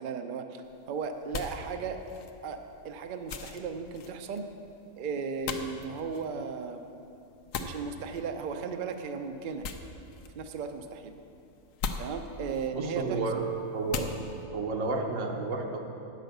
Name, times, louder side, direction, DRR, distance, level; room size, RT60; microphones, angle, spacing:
voice 1, 0.0-2.0 2.4-2.6 2.8-4.4 5.0-6.8 7.6-9.6 10.4-11.1 12.0-13.2, right 5 dB, 55° right, 6 dB, 0.6 m, -36 dB
sound 1, 0.6-14.5, left 5 dB, 80° left, 1.0 m, -42 dB
voice 2, 12.7-13.4 13.7-14.2 14.5-15.8, right 3 dB, 75° right, 2 dB, 1.3 m, -31 dB
9.0 x 6.5 x 6.5 m, 2.8 s
omnidirectional pair, 1.4 m